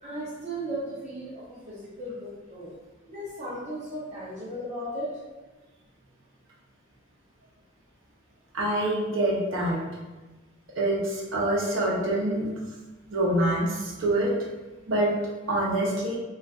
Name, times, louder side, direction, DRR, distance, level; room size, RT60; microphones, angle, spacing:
voice 1, 0.0-2.7 3.1-5.1, right 1 dB, 35° right, -10 dB, 0.7 m, -36 dB
voice 2, 8.5-9.8 10.8-12.5 13.1-14.3 14.9-15.1 15.5-16.2, right 1 dB, 70° right, -3 dB, 0.7 m, -25 dB
2.4 x 2.4 x 3.4 m, 1.2 s
head